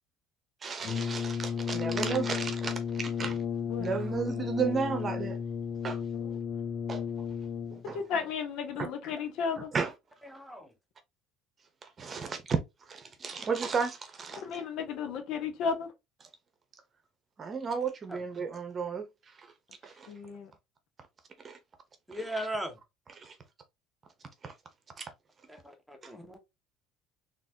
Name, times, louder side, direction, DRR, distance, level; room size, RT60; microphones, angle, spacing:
voice 1, 0.6-3.5 3.8-5.4 5.8-6.0 6.9-7.0 7.7-8.0 9.7-9.9 12.0-12.6 12.9-14.4 17.4-19.0 19.8-20.1 21.4-21.6 22.1-22.2 23.2-23.3 24.4-24.5 25.0-25.1, right 5 dB, 30° right, 0.9 m, -33 dB
Brass instrument, 0.8-8.0, left 7 dB, 45° left, 0.3 m, -34 dB
voice 2, 3.7-4.0 6.2-6.3 7.9-9.7 14.4-15.9 20.1-20.5, left 6 dB, 65° left, 1.1 m, -34 dB
voice 3, 10.2-10.7 18.1-18.2 22.1-22.8 25.5-26.4, right 1 dB, ahead, 1.2 m, -38 dB
4.1 x 3.0 x 2.9 m
supercardioid pair, 110°, 0 cm